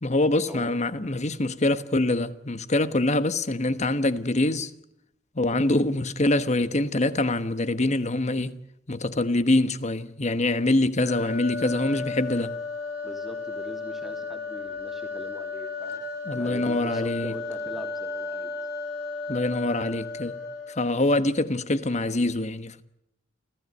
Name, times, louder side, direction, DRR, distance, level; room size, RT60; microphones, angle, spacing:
voice 1, 0.0-4.7 5.4-8.6 8.9-12.5 16.3-17.3 19.3-20.4 20.8-22.8, left 2 dB, 35° left, 1.3 m, -24 dB
sound 1, 11.0-21.0, left 4 dB, 55° left, 5.6 m, -34 dB
voice 2, 13.0-18.5, equal, ahead, 2.7 m, -42 dB
28.5 x 16.0 x 9.6 m
head